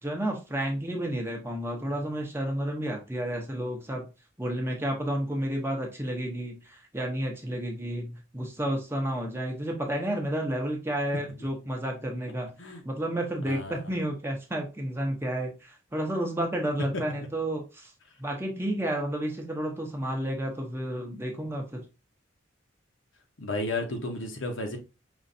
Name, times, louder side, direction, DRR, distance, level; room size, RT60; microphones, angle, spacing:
voice 1, 0.0-4.0 4.4-12.5 12.8-17.9 18.2-21.8, right 1 dB, 10° right, 2 dB, 0.7 m, -31 dB
voice 2, 13.5-13.8 23.4-24.8, left 2 dB, 70° left, 4 dB, 1.0 m, -33 dB
5.2 x 3.1 x 2.6 m, 0.29 s
head